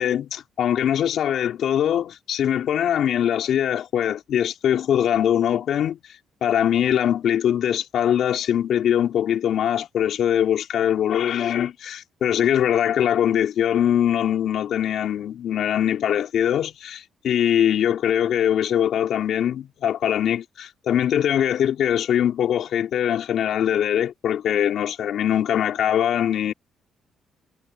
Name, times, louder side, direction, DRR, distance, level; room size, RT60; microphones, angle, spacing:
voice 1, 0.0-6.0 6.4-26.5, left 10 dB, 70° left, 3.9 m, -22 dB
cardioid pair, 90°, 0 cm